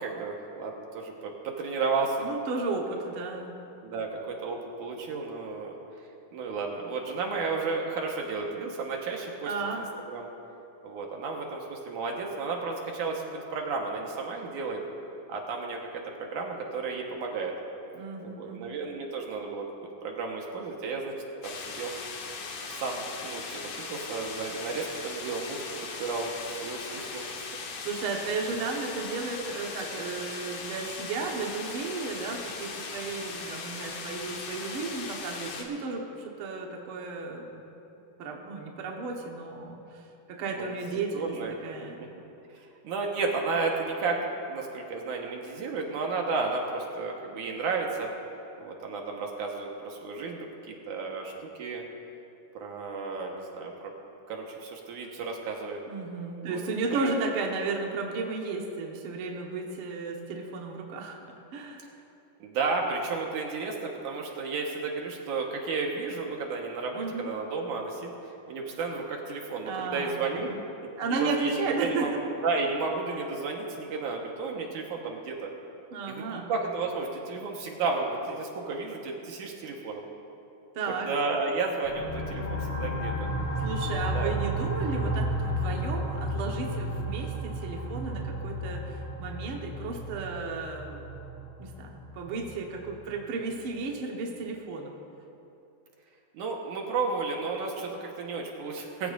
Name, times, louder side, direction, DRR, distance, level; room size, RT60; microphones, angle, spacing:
voice 1, 0.0-2.3 3.8-5.8 6.3-9.5 10.1-10.3 10.8-14.8 15.3-17.5 18.2-21.1 21.4-21.9 22.7-23.6 23.9-27.5 40.5-41.5 42.5-48.1 48.6-51.8 52.5-53.9 54.3-55.8 56.4-56.6 56.9-57.1 62.4-68.1 68.5-70.5 71.1-75.5 76.1-80.0 81.0-83.1 84.0-84.3 96.3-99.1, right 4 dB, 70° right, 0 dB, 2.7 m, -33 dB
voice 2, 2.2-3.6 9.4-9.9 17.9-18.8 27.9-37.6 38.2-40.0 40.3-41.3 41.6-42.1 55.9-61.2 61.5-61.9 66.9-67.3 69.6-70.6 71.0-72.2 73.1-73.2 75.9-76.5 80.8-81.1 83.6-91.0 91.6-94.9, right 4 dB, 55° right, 0 dB, 1.7 m, -34 dB
sound 1, 21.4-35.6, left 4 dB, 65° left, 2.7 m, -39 dB
sound 2, 81.8-93.2, equal, 90° left, 0.6 m, -33 dB
22.0 x 15.0 x 2.6 m, 2.9 s
omnidirectional pair, 3.8 m